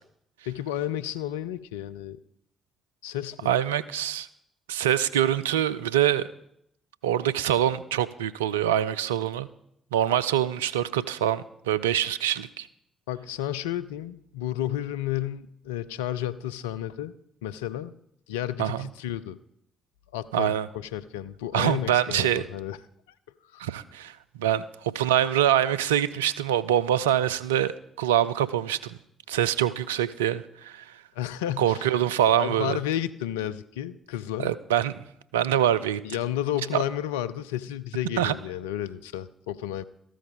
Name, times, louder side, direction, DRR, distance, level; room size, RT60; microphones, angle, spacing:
voice 1, 0.4-2.2 3.0-3.5 13.1-17.1 17.4-17.9 18.3-19.4 20.1-22.8 23.5-23.6 31.2-31.9 32.4-34.5 36.0-39.8, left 12 dB, 80° left, 13 dB, 0.4 m, -32 dB
voice 2, 3.5-4.3 4.7-6.2 7.0-9.5 9.9-12.7 18.6-18.8 20.3-20.7 21.5-22.4 23.6-27.7 28.0-29.0 29.3-31.0 31.6-32.8 34.4-34.9 35.3-36.0 38.2-38.3, right 11 dB, 80° right, 13 dB, 0.3 m, -24 dB
13.5 x 12.5 x 3.5 m, 0.74 s
figure-of-eight pair, 40°, 0 cm